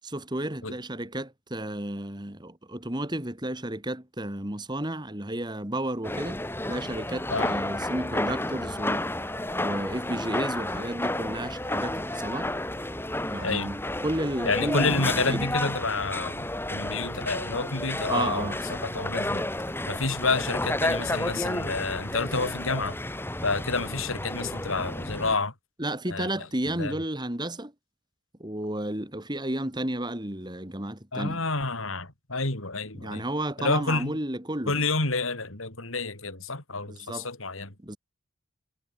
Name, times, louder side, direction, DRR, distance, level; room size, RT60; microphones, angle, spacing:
voice 1, 0.0-6.4 6.7-9.1 9.6-12.5 13.3-15.5 18.1-18.7 25.8-27.7 28.4-31.4 32.9-34.8 36.9-37.3 37.8-38.0, right 1 dB, 20° right, 2.6 m, -32 dB
sound 1, 6.0-25.4, left 1 dB, 10° left, 5.2 m, -31 dB
voice 2, 14.4-19.4 19.9-23.0 23.4-25.5 26.1-26.5 26.8-27.0 31.1-33.3 33.6-34.2 34.7-37.7, left 3 dB, 80° left, 4.8 m, -29 dB
head